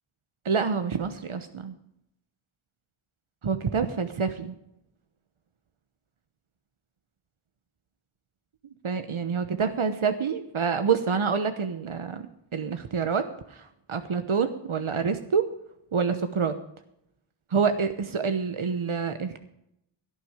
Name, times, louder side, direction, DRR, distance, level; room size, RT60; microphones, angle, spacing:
voice 1, 0.4-1.8 3.4-4.6 8.8-12.2 12.5-15.5 15.9-16.6 17.5-19.4, right 6 dB, 75° right, 9 dB, 1.1 m, -27 dB
17.0 x 9.7 x 5.0 m, 0.78 s
wide cardioid pair, 50°, 49 cm